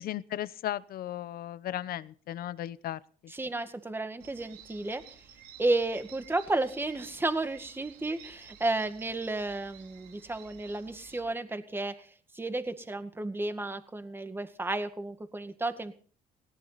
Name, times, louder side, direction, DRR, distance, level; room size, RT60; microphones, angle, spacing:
voice 1, 0.0-3.3, left 12 dB, 60° left, 17 dB, 0.9 m, -36 dB
voice 2, 3.3-5.0 5.6-12.1 12.3-16.0, right 2 dB, 15° right, 9 dB, 1.9 m, -32 dB
sound 1, 4.2-11.2, right 9 dB, 80° right, 3.8 m, -53 dB
18.5 x 18.5 x 4.2 m, 0.43 s
cardioid pair, 110°, 17 cm